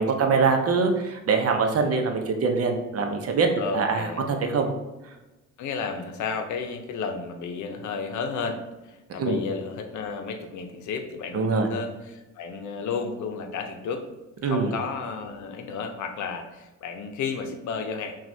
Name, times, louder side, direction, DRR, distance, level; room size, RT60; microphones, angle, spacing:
voice 1, 0.0-3.5 3.7-4.7 9.2-9.4 11.3-11.7 14.4-14.7, right 4 dB, 50° right, 4 dB, 0.7 m, -23 dB
voice 2, 3.6-4.3 5.6-14.0 14.4-18.2, left 5 dB, 75° left, 6 dB, 0.7 m, -32 dB
5.8 x 2.4 x 2.7 m, 1.1 s
cardioid pair, 90°, 30 cm